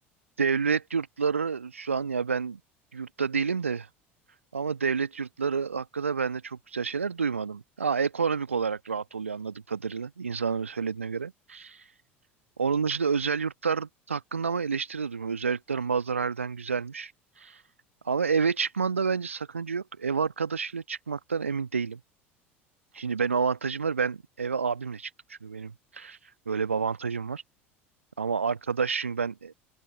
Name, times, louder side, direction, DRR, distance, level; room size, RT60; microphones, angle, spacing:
voice 1, 0.4-2.6 2.9-3.9 4.5-11.8 12.6-17.1 17.4-17.6 18.0-22.0 22.9-25.1 25.4-26.2 26.5-27.4 28.2-29.5, right 5 dB, 80° right, 1.3 m, -29 dB
open air
figure-of-eight pair, 70°, 7 cm